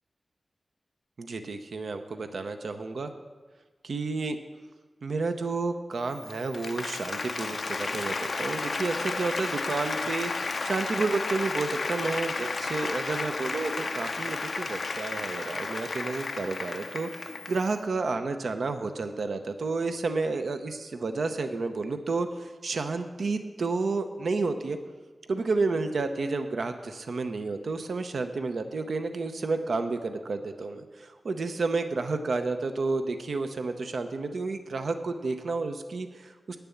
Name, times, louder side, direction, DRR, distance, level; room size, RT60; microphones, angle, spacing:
voice 1, 1.2-3.1 3.8-4.4 5.0-24.8 25.3-36.6, right 3 dB, 80° right, 7 dB, 0.7 m, -31 dB
Applause, 6.1-17.7, left 3 dB, 65° left, 0.4 m, -33 dB
9.7 x 6.8 x 7.0 m, 1.3 s
cardioid pair, 45°, 0 cm